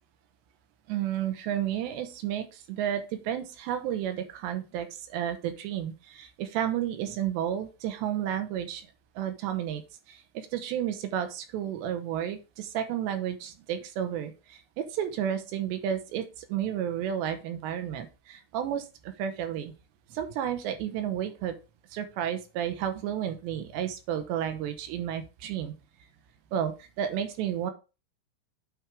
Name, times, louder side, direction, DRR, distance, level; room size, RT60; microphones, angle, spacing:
voice 1, 0.9-8.9 9.2-9.8 10.1-19.7 20.1-21.6 21.9-25.7 26.5-27.7, right 10 dB, 80° right, 8 dB, 2.9 m, -32 dB
9.1 x 3.5 x 4.7 m, 0.30 s
omnidirectional pair, 5.3 m